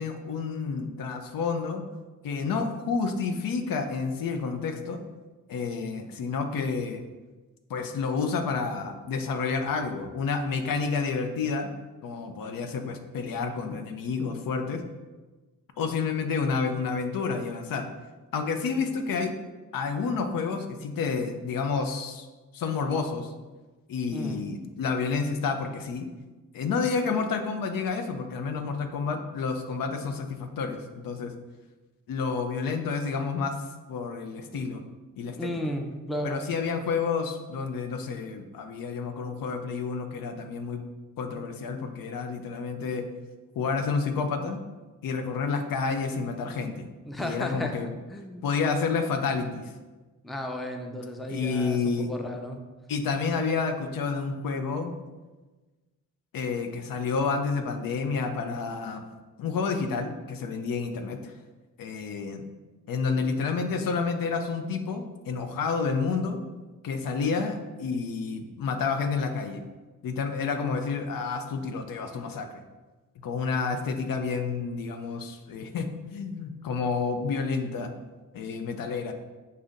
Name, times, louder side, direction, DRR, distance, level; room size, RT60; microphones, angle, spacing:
voice 1, 0.0-1.8 2.2-5.0 5.5-7.0 7.7-11.7 12.0-14.8 15.8-17.9 18.3-19.3 19.7-22.3 22.5-23.3 23.9-26.1 26.5-31.3 32.1-33.6 33.9-34.8 35.2-35.5 36.2-40.8 41.2-43.0 43.6-44.6 45.0-46.9 47.2-47.9 48.4-49.7 51.3-52.1 52.9-54.9 56.3-59.0 59.4-61.3 61.8-62.4 62.9-66.4 66.8-69.6 70.0-72.6 73.2-77.9 78.3-79.1, left 5 dB, 80° left, 6 dB, 0.5 m, -29 dB
voice 2, 24.1-24.5 34.5-34.6 35.4-36.4 47.1-47.7 48.1-48.5 50.2-52.6 63.1-63.4, equal, ahead, 3 dB, 0.4 m, -34 dB
6.7 x 2.7 x 2.5 m, 1.2 s
cardioid pair, 90°, 33 cm